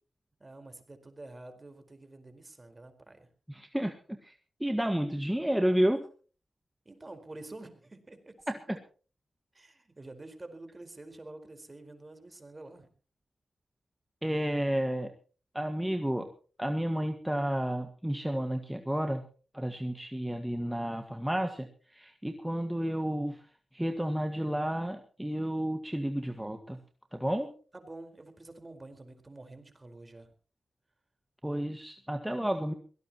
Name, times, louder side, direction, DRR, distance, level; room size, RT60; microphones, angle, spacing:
voice 1, 0.4-3.3 6.8-8.3 9.5-12.9 27.7-30.3, right 2 dB, 30° right, 7 dB, 4.5 m, -48 dB
voice 2, 3.5-6.1 8.5-8.8 14.2-15.1 15.5-16.3 16.6-19.2 19.5-23.4 23.7-26.8 27.1-27.5 31.4-32.7, equal, 5° right, 5 dB, 1.7 m, -31 dB
23.0 x 18.0 x 3.0 m, 0.39 s
cardioid pair, 60°, 0 cm